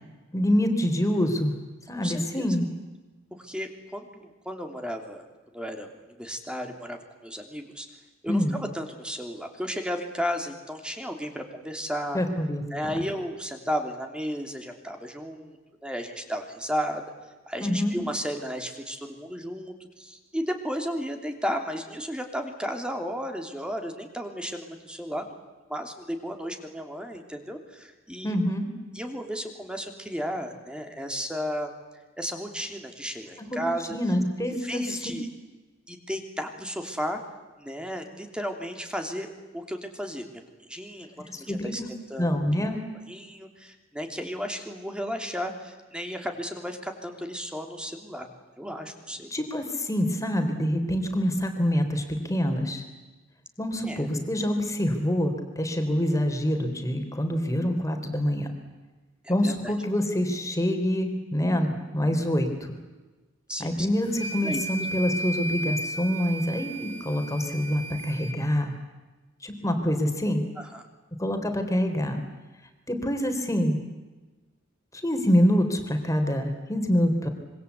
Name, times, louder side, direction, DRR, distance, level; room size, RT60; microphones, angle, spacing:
voice 1, 0.3-1.5 1.9-2.7 8.3-8.6 12.1-12.9 17.6-17.9 28.2-28.7 33.4-33.6 33.9-34.8 41.3-41.9 42.2-42.8 49.3-52.8 53.6-58.5 59.3-62.7 63.6-68.7 69.4-70.4 71.2-72.2 72.9-73.8 74.9-77.3, equal, 15° left, 5 dB, 3.7 m, -26 dB
voice 2, 1.9-2.5 3.4-5.2 5.5-7.9 8.2-12.2 12.7-15.6 15.8-17.0 17.5-25.4 25.7-28.4 28.9-31.7 32.2-34.0 34.4-35.3 35.9-37.2 37.6-40.4 40.7-41.1 41.4-41.8 42.1-42.4 42.7-42.8 43.1-48.3 48.6-49.3 53.9-54.0 59.2-59.7 63.5-63.9 64.4-64.6 70.6-70.9, equal, 5° right, 5 dB, 3.1 m, -34 dB
sound 1, 64.1-68.4, right 1 dB, 65° left, 2.4 m, -34 dB
26.0 x 24.5 x 8.4 m, 1.2 s
head